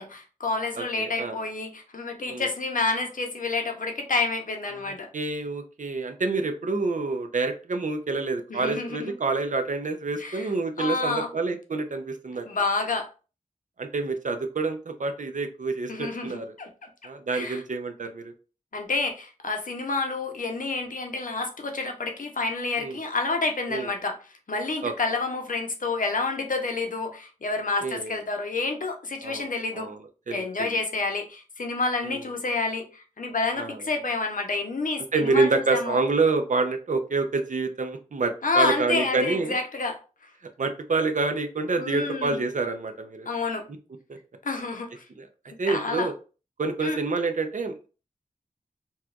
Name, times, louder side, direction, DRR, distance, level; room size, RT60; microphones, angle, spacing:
voice 1, 0.0-5.1 8.5-9.1 10.2-10.5 10.8-11.3 12.5-13.1 15.9-16.7 17.3-17.6 18.7-24.2 24.5-29.9 30.3-36.0 38.4-40.0 41.8-42.4 43.3-43.6 44.4-45.0 45.7-46.1 46.8-47.0, left 3 dB, 70° left, 4 dB, 0.7 m, -29 dB
voice 2, 0.8-1.4 2.3-2.5 4.9-12.5 13.8-16.5 17.0-18.3 22.8-23.0 23.7-23.9 24.8-24.9 27.8-28.1 29.2-29.5 29.7-30.0 30.3-30.7 32.0-32.2 33.5-33.8 35.1-39.5 40.6-43.3 45.2-45.3 45.6-46.1 46.6-47.7, right 3 dB, 60° right, 6 dB, 0.6 m, -27 dB
4.1 x 2.3 x 2.4 m, 0.35 s
wide cardioid pair, 60°, 14 cm